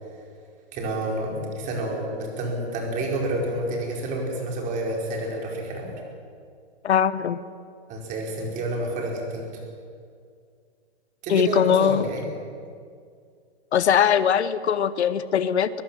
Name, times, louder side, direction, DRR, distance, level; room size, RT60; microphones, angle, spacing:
voice 1, 0.7-5.9 7.9-9.6 11.2-12.2, right 1 dB, 25° right, 0 dB, 4.7 m, -29 dB
voice 2, 6.8-7.4 11.3-12.1 13.7-15.8, left 8 dB, 80° left, 14 dB, 1.1 m, -21 dB
22.5 x 21.5 x 7.5 m, 2.2 s
hypercardioid pair, 160°, 33 cm